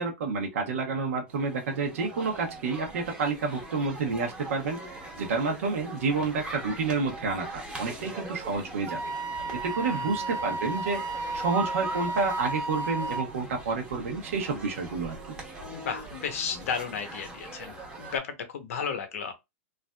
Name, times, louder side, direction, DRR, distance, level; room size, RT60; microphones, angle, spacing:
voice 1, 0.0-9.0 9.6-15.2, right 4 dB, 80° right, 0.9 m, -29 dB
sound 1, 1.3-18.2, right 2 dB, 10° right, 0.9 m, -42 dB
Wind instrument woodwind instrument, 8.9-13.3, right 2 dB, 40° right, 0.8 m, -33 dB
voice 2, 9.9-10.3 15.7-19.3, left 6 dB, 80° left, 0.8 m, -34 dB
3.3 x 2.5 x 2.2 m
supercardioid pair, 140°, 8 cm